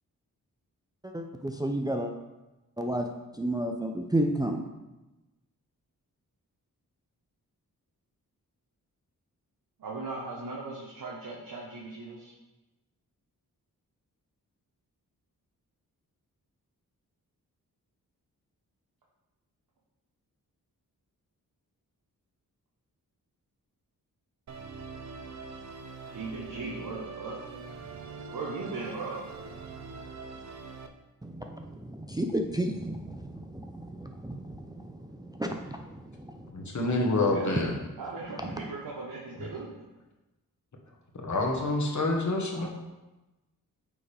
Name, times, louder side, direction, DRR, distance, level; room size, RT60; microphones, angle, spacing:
voice 1, 1.0-2.1 2.8-3.1 3.4-4.6 31.2-35.8 36.2-36.3, right 1 dB, 10° right, 3 dB, 0.5 m, -32 dB
voice 2, 9.8-12.3 26.1-27.4 28.3-29.2 37.2-37.6 38.0-39.7 42.5-42.7, right 3 dB, 65° right, -4 dB, 1.1 m, -38 dB
Musical instrument, 24.5-30.9, right 4 dB, 50° right, 0.6 m, -43 dB
voice 3, 36.5-37.7 41.2-42.7, left 2 dB, 50° left, 1 dB, 1.3 m, -27 dB
8.4 x 3.6 x 3.4 m, 1.0 s
cardioid pair, 55°, 36 cm